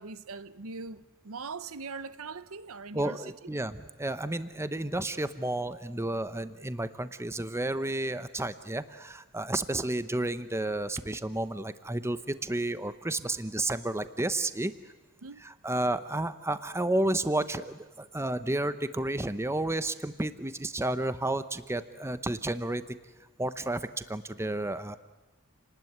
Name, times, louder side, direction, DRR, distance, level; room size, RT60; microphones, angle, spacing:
voice 1, 0.0-3.2 15.2-15.4, right 4 dB, 65° right, 0.9 m, -41 dB
voice 2, 2.9-14.7 15.4-23.0 23.4-25.0, right 1 dB, 10° right, 0.9 m, -31 dB
28.5 x 19.5 x 9.5 m
head